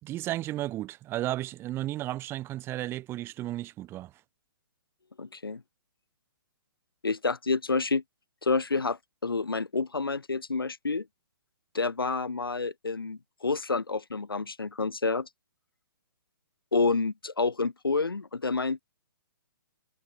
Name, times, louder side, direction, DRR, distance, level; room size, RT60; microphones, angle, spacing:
voice 1, 0.0-4.1, right 15 dB, 20° right, 2.4 m, -33 dB
voice 2, 5.2-5.6 7.0-8.0 8.4-11.0 11.7-15.3 16.7-18.8, left 4 dB, 85° left, 0.8 m, -29 dB
figure-of-eight pair, 130°, 12 cm